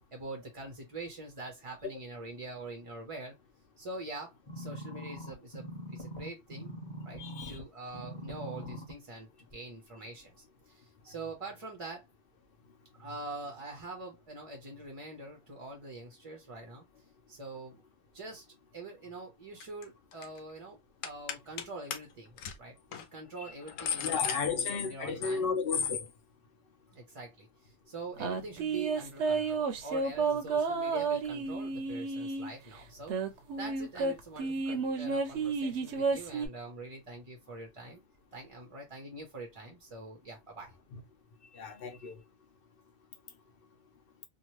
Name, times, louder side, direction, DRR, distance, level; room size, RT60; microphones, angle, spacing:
voice 1, 0.0-3.4 3.8-6.8 7.0-12.1 12.9-17.0 17.3-17.8 18.1-18.5 18.7-25.4 26.9-33.2 33.6-38.0 38.3-40.7, right 2 dB, 35° right, 0.6 m, -45 dB
sound 1, 4.5-7.6 7.9-8.9 9.5-9.6, equal, 25° left, 1.1 m, -42 dB
voice 2, 7.2-7.6 24.0-26.1 40.9-41.0 41.5-42.2, left 5 dB, 50° left, 0.9 m, -34 dB
sound 2, 19.6-19.8 20.1-20.4 21.0-21.6 21.9-22.0 22.4-22.5 22.9-23.0 23.5-25.4 25.7-26.1, left 7 dB, 90° left, 1.0 m, -34 dB
sound 3, 28.2-32.5 33.1-36.5, right 4 dB, 65° right, 0.9 m, -31 dB
2.9 x 2.3 x 2.9 m
omnidirectional pair, 1.3 m